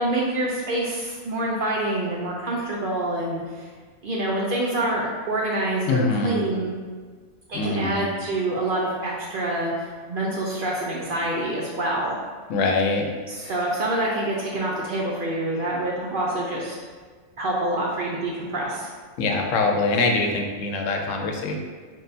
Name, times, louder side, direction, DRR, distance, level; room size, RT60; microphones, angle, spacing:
voice 1, 0.0-3.7 4.0-6.7 7.5-12.2 13.3-16.7 17.4-18.9, right 1 dB, 60° right, -4 dB, 0.6 m, -26 dB
voice 2, 5.9-6.4 7.5-8.1 12.5-13.1 13.4-13.5 19.2-21.6, left 3 dB, 75° left, 2 dB, 0.9 m, -24 dB
6.2 x 2.2 x 2.7 m, 1.5 s
omnidirectional pair, 1.4 m